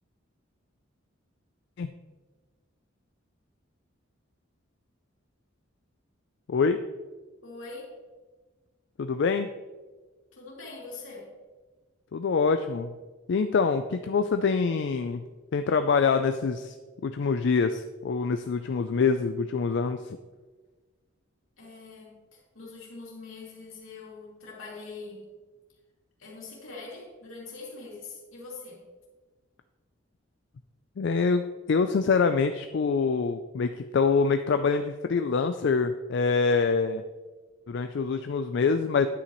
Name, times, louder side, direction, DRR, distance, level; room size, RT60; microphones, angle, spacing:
voice 1, 6.5-6.8 9.0-9.5 12.1-13.0 13.3-15.2 15.5-16.7 17.0-20.2 31.0-31.4 31.7-37.0 37.7-39.1, left 5 dB, 60° left, 8 dB, 0.4 m, -25 dB
voice 2, 7.4-8.0 10.3-11.3 21.6-25.3 26.2-28.8, left 3 dB, 80° left, -3 dB, 2.6 m, -43 dB
9.8 x 8.4 x 3.0 m, 1.3 s
head